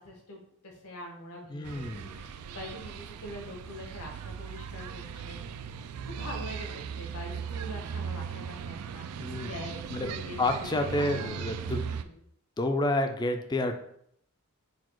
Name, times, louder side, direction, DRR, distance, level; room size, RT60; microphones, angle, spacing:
voice 1, 0.0-5.4 6.0-12.2, equal, 85° left, 0 dB, 1.1 m, -44 dB
voice 2, 1.5-2.2 9.2-9.5 9.9-10.1 10.4-12.0 12.6-13.8, left 1 dB, 20° left, 6 dB, 0.3 m, -29 dB
sound 1, 1.6-12.0, right 6 dB, 85° right, 0.3 m, -38 dB
4.1 x 2.4 x 4.5 m, 0.69 s
head